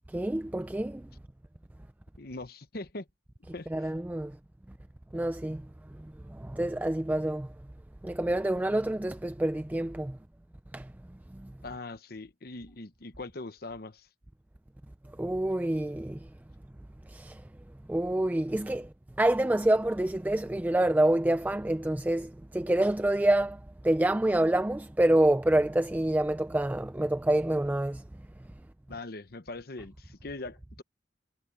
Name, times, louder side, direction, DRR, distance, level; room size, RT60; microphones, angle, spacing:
voice 1, 0.1-1.1 3.7-4.4 5.1-5.6 6.0-7.5 8.0-10.2 10.7-10.9 11.3-11.5 15.2-16.3 17.1-17.4 17.9-28.0, right 1 dB, 10° right, 0.3 m, -27 dB
voice 2, 2.2-3.1 3.5-3.9 11.6-14.1 28.9-30.8, left 2 dB, 55° left, 1.0 m, -41 dB
head